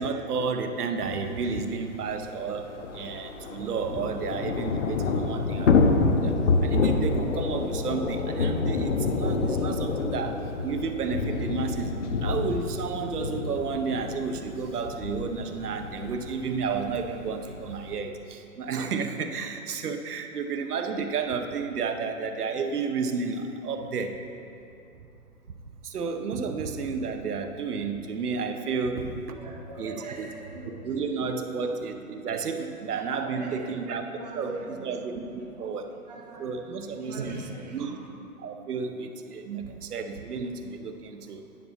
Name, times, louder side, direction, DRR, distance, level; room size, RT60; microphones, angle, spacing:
voice 1, 0.0-24.2 25.8-29.4 29.8-30.3 30.7-34.1 34.3-35.9 36.4-38.0 38.4-41.4, right 5 dB, 80° right, 6 dB, 0.9 m, -32 dB
Thunder / Rain, 1.4-1.5 1.7-1.8 2.1-18.0, left 4 dB, 55° left, 0.7 m, -28 dB
voice 2, 29.4-30.7 33.3-34.4 34.7-35.1 36.1-36.4 36.9-37.9, right 3 dB, 30° right, -2 dB, 0.8 m, -40 dB
9.7 x 4.0 x 7.2 m, 2.6 s
hypercardioid pair, 170°, 45 cm